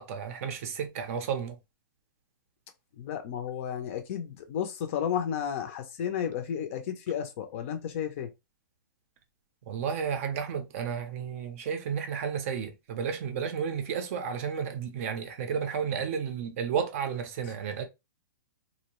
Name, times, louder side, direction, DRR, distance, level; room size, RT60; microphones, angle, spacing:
voice 1, 0.0-1.6 9.7-17.8, right 7 dB, 40° right, 0.5 m, -32 dB
voice 2, 3.0-8.3 17.4-17.5, left 8 dB, 35° left, 0.4 m, -33 dB
2.6 x 2.0 x 2.9 m
hypercardioid pair, 165°, 12 cm